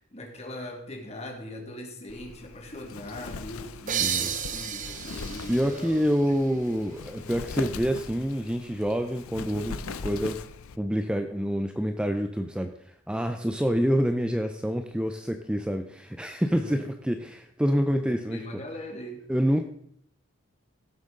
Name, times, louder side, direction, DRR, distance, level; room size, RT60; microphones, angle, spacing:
voice 1, 0.0-6.1 6.6-6.7 16.5-16.9 18.0-19.2, left 1 dB, 30° left, 3 dB, 1.9 m, -40 dB
Wind, 2.1-10.8, left 4 dB, 85° left, 0.6 m, -40 dB
sound 1, 3.9-7.3, right 9 dB, 40° right, 0.7 m, -33 dB
voice 2, 4.0-4.3 5.5-10.4 10.8-18.4 19.3-19.6, equal, 5° right, 6 dB, 0.4 m, -27 dB
16.0 x 7.7 x 3.7 m, 0.70 s
head